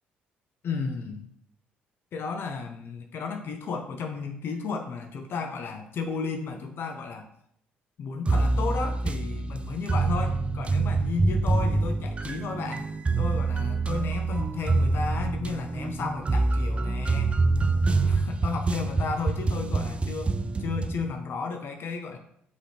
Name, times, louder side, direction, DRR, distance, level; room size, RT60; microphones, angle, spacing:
voice 1, 0.6-1.3 2.1-7.3 8.0-12.9 13.2-17.3 18.0-20.3 20.6-22.2, left 4 dB, 60° left, 4 dB, 0.5 m, -33 dB
sound 1, 8.3-21.0, right 3 dB, 25° right, 0.4 m, -26 dB
5.0 x 3.0 x 3.3 m, 0.69 s
supercardioid pair, 60°, 4 cm